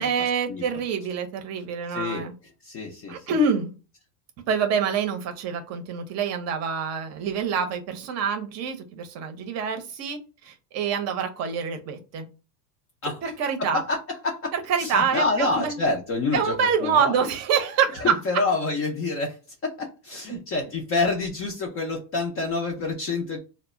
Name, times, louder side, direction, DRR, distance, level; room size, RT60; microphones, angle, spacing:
voice 1, 0.0-2.3 3.1-3.7 4.5-12.3 13.2-13.8 14.5-15.8 16.3-18.1 20.3-20.4, right 6 dB, 35° right, 6 dB, 0.6 m, -26 dB
voice 2, 1.9-2.3 2.6-3.4 13.0-13.2 13.6-14.5 14.8-16.5 16.8-17.2 18.0-19.4 19.8-23.4, left 3 dB, 30° left, 0 dB, 0.5 m, -27 dB
2.1 x 2.0 x 3.5 m, 0.33 s
supercardioid pair, 130°, 47 cm